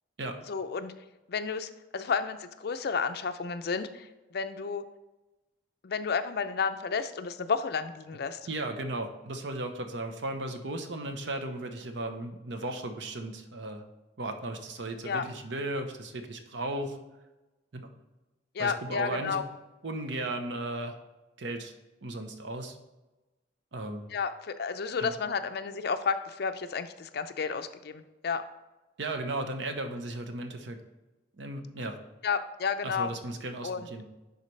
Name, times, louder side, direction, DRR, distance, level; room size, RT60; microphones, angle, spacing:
voice 1, 0.5-0.9 1.3-4.8 5.8-8.4 15.0-15.3 18.5-19.4 24.1-28.4 32.2-33.1 33.6-33.9, left 5 dB, 60° left, 9 dB, 0.5 m, -31 dB
voice 2, 8.5-13.8 14.2-17.0 17.7-17.9 18.6-19.4 19.8-20.9 21.4-21.7 22.0-22.8 23.7-24.1 25.0-25.1 29.0-30.8 31.4-32.0 32.8-34.1, right 2 dB, 85° right, 6 dB, 0.9 m, -35 dB
10.5 x 4.1 x 3.2 m, 1.1 s
head